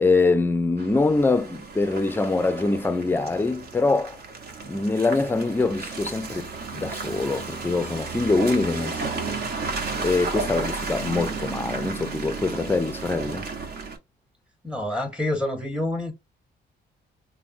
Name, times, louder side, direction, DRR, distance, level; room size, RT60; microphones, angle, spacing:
voice 1, 0.0-4.2 4.7-9.3 10.0-13.5, left 3 dB, 10° left, 0.4 m, -24 dB
Car passing by / Engine, 0.8-14.0, right 4 dB, 55° right, 0.8 m, -33 dB
voice 2, 14.6-16.1, left 1 dB, 5° right, 0.8 m, -27 dB
3.4 x 2.1 x 2.5 m
cardioid pair, 90°, 20 cm